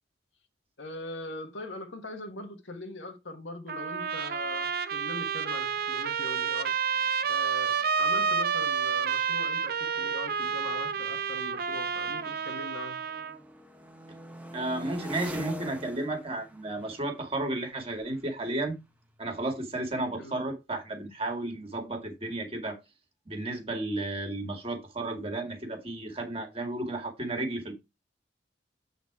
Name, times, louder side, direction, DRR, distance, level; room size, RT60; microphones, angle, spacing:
voice 1, 0.8-6.8 7.3-13.0 20.1-20.3, left 2 dB, 75° left, 1.5 m, -41 dB
Trumpet, 3.7-13.4, right 6 dB, 55° right, 0.6 m, -30 dB
sound 1, 7.2-7.3 7.5-7.9 8.6-12.6 12.9-19.6, equal, 10° right, 0.9 m, -46 dB
voice 2, 14.5-18.8 19.2-22.8 23.3-27.7, right 2 dB, 30° right, 2.0 m, -33 dB
8.0 x 4.1 x 4.7 m
head